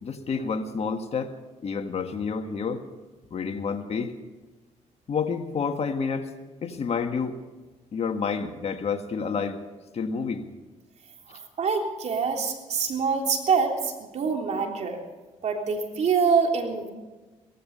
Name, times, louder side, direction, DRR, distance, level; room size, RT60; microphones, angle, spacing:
voice 1, 0.0-1.4 1.6-2.8 3.3-4.1 5.1-6.3 6.6-7.4 7.9-9.6 9.9-10.5 11.3-11.4, left 5 dB, 50° left, 7 dB, 1.7 m, -29 dB
voice 2, 11.3-15.0 15.4-16.9, right 5 dB, 60° right, 2 dB, 3.5 m, -25 dB
17.5 x 15.0 x 5.5 m, 1.2 s
supercardioid pair, 70°, 13 cm